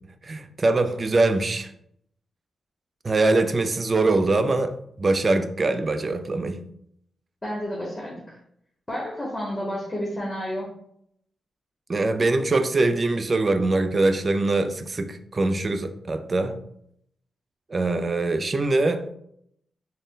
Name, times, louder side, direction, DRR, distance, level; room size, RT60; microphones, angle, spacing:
voice 1, 0.2-1.7 3.0-6.6 11.9-16.6 17.7-19.1, right 2 dB, 40° right, 0.4 m, -23 dB
voice 2, 7.4-8.4 8.9-10.7, equal, 20° left, 1.1 m, -31 dB
3.8 x 2.1 x 3.7 m
cardioid pair, 65°, 0 cm